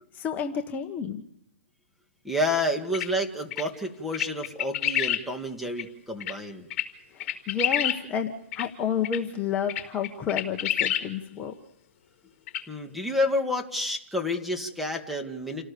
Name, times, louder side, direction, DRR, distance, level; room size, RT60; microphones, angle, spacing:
voice 1, 0.1-1.2 7.1-11.5, left 7 dB, 20° left, 4 dB, 1.3 m, -30 dB
voice 2, 2.2-6.7 12.7-15.6, left 1 dB, ahead, 3 dB, 2.1 m, -29 dB
sound 1, 2.9-3.1 3.5-3.6 4.1-5.2 5.8-5.9 6.2-6.3 6.7-6.9 7.2-8.0 8.5-8.7 9.0-9.2 9.7-11.0 12.5-12.6, left 11 dB, 45° left, 4.3 m, -27 dB
29.0 x 18.0 x 6.9 m, 0.75 s
hypercardioid pair, 145°, 8 cm